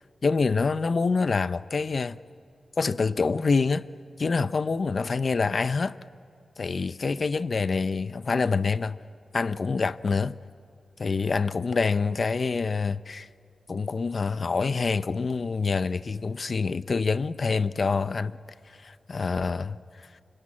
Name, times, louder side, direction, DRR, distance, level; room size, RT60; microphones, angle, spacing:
voice 1, 0.2-2.2 2.8-3.8 4.2-6.0 6.6-9.0 9.3-10.3 11.0-13.3 13.7-18.4 18.7-19.8, left 4 dB, 50° left, 0.6 m, -26 dB
28.5 x 24.0 x 8.6 m
wide cardioid pair, 110°, 0 cm